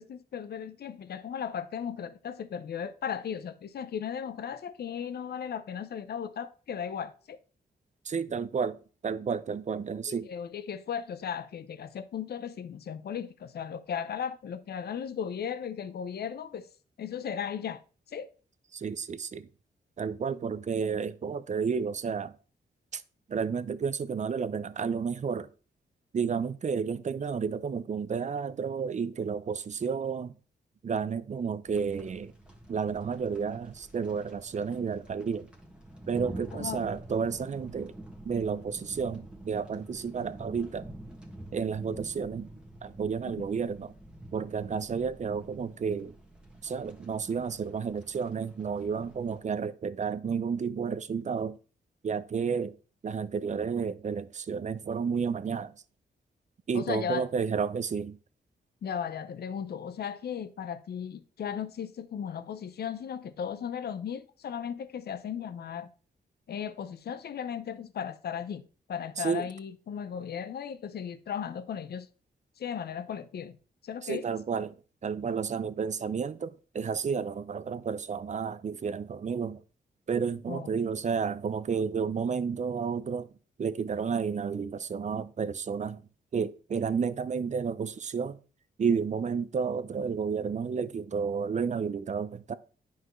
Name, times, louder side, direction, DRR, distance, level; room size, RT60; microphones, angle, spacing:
voice 1, 0.0-7.4 10.1-16.7 17.0-17.8 18.1-18.3 36.5-36.9 43.4-43.5 56.7-57.3 58.8-65.9 66.5-68.6 68.9-72.1 72.6-73.6 73.8-74.2 80.5-80.7, left 8 dB, 65° left, 0.7 m, -36 dB
voice 2, 8.1-8.8 9.0-10.3 18.7-19.5 20.0-22.3 22.9-23.0 23.3-25.5 26.1-30.3 30.8-32.3 32.7-35.5 36.1-37.9 38.2-40.9 41.5-42.5 42.8-43.9 44.3-46.1 46.6-51.6 52.0-52.7 53.0-55.7 56.7-58.2 69.2-69.5 74.0-74.7 75.0-79.6 80.1-83.3 83.6-86.0 86.3-88.4 88.8-92.5, right 6 dB, 45° right, 0.6 m, -31 dB
sound 1, 31.7-49.4, right 1 dB, 5° right, 1.7 m, -48 dB
10.0 x 5.6 x 3.2 m
cardioid pair, 85°, 17 cm